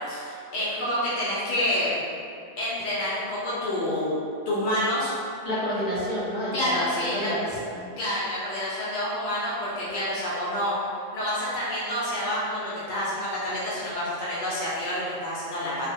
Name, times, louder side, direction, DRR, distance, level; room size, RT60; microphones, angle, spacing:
voice 1, 0.0-2.1 2.6-4.1 4.5-5.1 6.5-7.3 8.0-10.8 11.1-15.9, left 1 dB, 80° left, -9 dB, 0.4 m, -28 dB
voice 2, 5.4-7.9, equal, 35° left, -11 dB, 0.8 m, -29 dB
2.2 x 2.0 x 2.7 m, 2.4 s
omnidirectional pair, 1.4 m